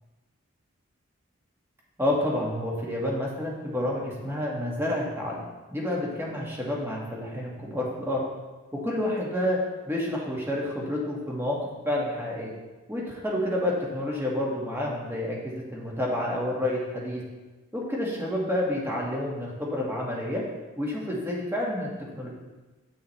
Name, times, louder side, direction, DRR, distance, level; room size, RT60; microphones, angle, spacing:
voice 1, 2.0-5.4 5.7-8.2 8.7-9.6 9.9-12.5 12.9-17.2 17.7-20.4 20.8-22.3, left 1 dB, 10° right, -3 dB, 1.7 m, -29 dB
9.3 x 8.4 x 3.3 m, 1.2 s
head